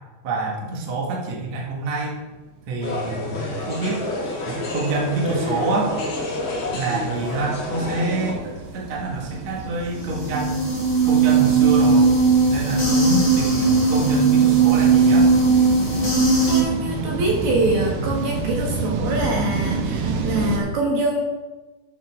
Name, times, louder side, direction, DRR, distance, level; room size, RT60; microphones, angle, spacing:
voice 1, 0.2-2.1 2.7-4.0 4.5-5.9 6.7-10.6 11.0-12.1 12.5-15.3, right 3 dB, 50° right, -3 dB, 2.6 m, -26 dB
sound 1, 2.8-8.3, left 2 dB, 45° left, 1.6 m, -29 dB
sound 2, 2.9-20.6, right 3 dB, 85° right, 3.5 m, -30 dB
sound 3, 9.9-16.6, right 4 dB, 20° left, 2.2 m, -18 dB
voice 2, 16.5-21.2, right 2 dB, 65° right, -1 dB, 3.3 m, -24 dB
13.0 x 8.3 x 3.8 m, 1.2 s
omnidirectional pair, 5.0 m